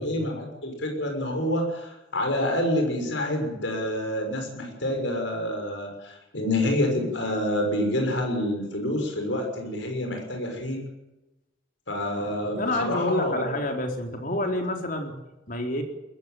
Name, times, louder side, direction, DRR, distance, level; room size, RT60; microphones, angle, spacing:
voice 1, 0.0-10.8 11.9-13.5, left 1 dB, 70° left, 3 dB, 6.3 m, -27 dB
voice 2, 12.6-15.1 15.5-15.8, left 1 dB, 45° left, 3 dB, 4.2 m, -28 dB
21.5 x 15.0 x 9.3 m, 0.98 s
head